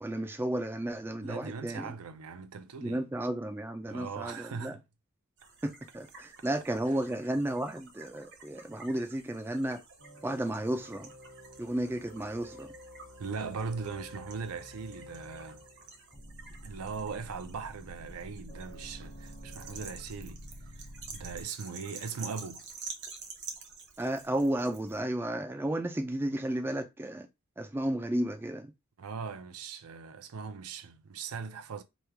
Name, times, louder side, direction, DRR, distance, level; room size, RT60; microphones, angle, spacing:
voice 1, 0.0-1.9 2.8-4.8 5.6-9.8 10.2-11.1 11.6-12.7 24.0-27.3 27.6-28.7, right 1 dB, 10° right, 0.3 m, -33 dB
voice 2, 1.2-3.1 3.9-4.8 6.9-7.0 13.2-15.6 16.6-20.4 20.7-22.6 29.0-31.8, right 5 dB, 80° right, 0.5 m, -40 dB
sound 1, 5.4-25.0, right 5 dB, 50° right, 0.8 m, -50 dB
sound 2, 10.0-16.1, left 1 dB, 85° left, 1.1 m, -51 dB
sound 3, 16.1-21.4, equal, 25° left, 0.6 m, -47 dB
3.0 x 2.3 x 3.3 m
head